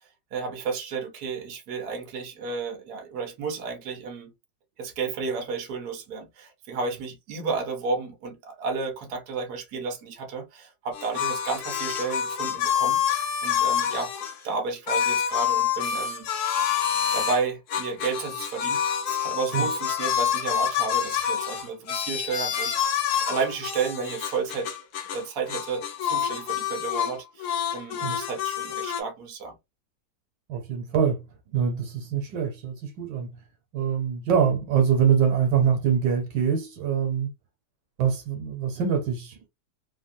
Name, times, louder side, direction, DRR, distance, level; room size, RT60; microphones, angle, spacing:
voice 1, 0.3-4.3 4.8-13.0 13.4-14.1 14.4-16.3 17.1-23.0 23.3-24.7 25.1-29.6, right 5 dB, 65° right, 1.4 m, -32 dB
sound 1, 10.9-14.3 14.9-17.4 17.7-25.2 25.5-27.1 27.4-29.0, left 9 dB, 70° left, 1.1 m, -27 dB
voice 2, 30.5-31.2 31.5-33.4 33.7-37.3 38.0-39.5, right 7 dB, 90° right, 1.5 m, -24 dB
3.4 x 2.2 x 2.6 m
omnidirectional pair, 1.9 m